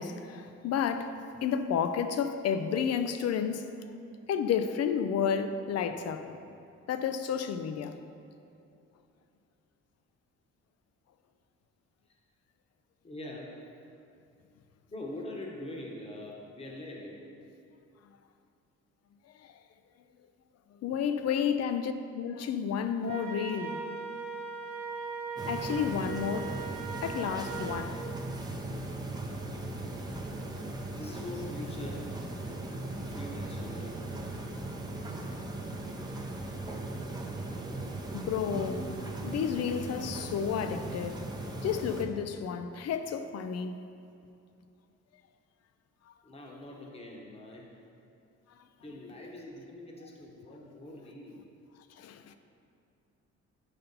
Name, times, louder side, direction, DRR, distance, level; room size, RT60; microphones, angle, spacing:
voice 1, 0.0-3.7 4.3-6.4 6.9-8.0 19.4-19.5 20.8-23.9 25.5-26.6 27.0-28.0 35.3-35.4 38.1-41.2 41.6-43.8 46.1-46.2 52.0-52.4, left 7 dB, 55° left, 0.4 m, -31 dB
voice 2, 13.0-13.6 14.9-17.2 21.2-21.5 30.8-32.1 33.1-34.0 46.2-47.8 48.8-51.5, left 1 dB, 20° left, 1.0 m, -43 dB
Wind instrument woodwind instrument, 23.0-27.9, right 5 dB, 70° right, 0.9 m, -39 dB
sound 1, 25.4-42.0, right 2 dB, 15° right, 0.6 m, -38 dB
5.6 x 4.2 x 5.2 m
cardioid pair, 90°, 30 cm